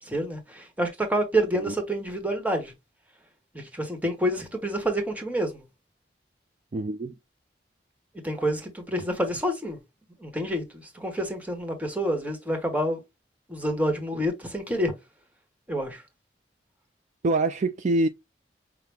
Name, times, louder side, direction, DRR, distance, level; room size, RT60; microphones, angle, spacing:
voice 1, 0.0-2.7 3.5-5.6 8.2-9.8 10.2-13.0 13.5-14.9 15.7-16.0, right 1 dB, 10° right, 1.2 m, -28 dB
voice 2, 6.7-7.1 17.2-18.1, right 2 dB, 40° right, 0.4 m, -25 dB
5.8 x 2.2 x 3.4 m
head